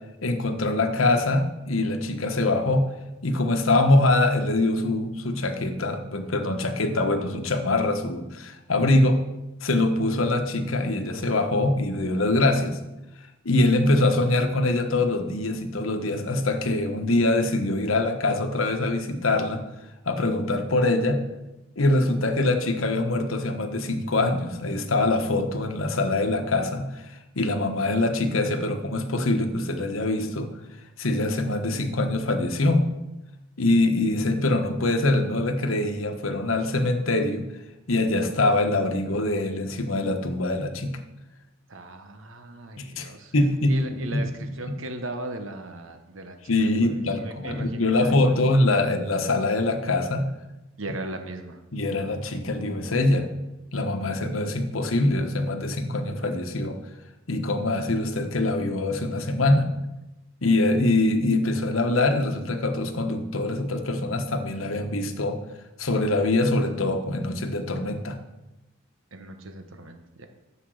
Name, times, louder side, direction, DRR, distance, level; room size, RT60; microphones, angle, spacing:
voice 1, 0.2-2.9 3.2-9.2 9.6-12.8 13.4-19.6 20.0-21.2 21.8-30.5 31.0-32.9 33.6-37.5 37.9-41.0 42.8-44.2 46.5-50.3 51.7-53.3 53.7-56.8 57.3-59.7 60.4-65.4 65.8-68.2, left 2 dB, 85° left, 6 dB, 1.2 m, -24 dB
voice 2, 41.7-43.3 43.7-46.5 46.8-48.4 50.8-51.6 69.1-70.3, right 1 dB, 75° right, 6 dB, 1.2 m, -37 dB
10.0 x 7.5 x 6.4 m, 0.97 s
head